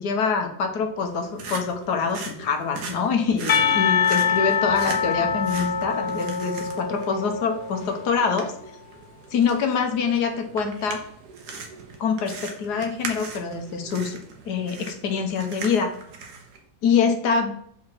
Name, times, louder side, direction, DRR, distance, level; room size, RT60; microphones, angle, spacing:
voice 1, 0.0-8.5 9.3-11.0 12.0-14.2 14.5-15.9 16.8-17.5, left 5 dB, 80° left, 5 dB, 1.6 m, -25 dB
sound 1, 1.0-16.6, right 4 dB, 85° right, 1.6 m, -39 dB
Percussion, 3.5-8.3, left 7 dB, 55° left, 0.7 m, -24 dB
4.9 x 4.8 x 5.9 m, 0.64 s
omnidirectional pair, 1.7 m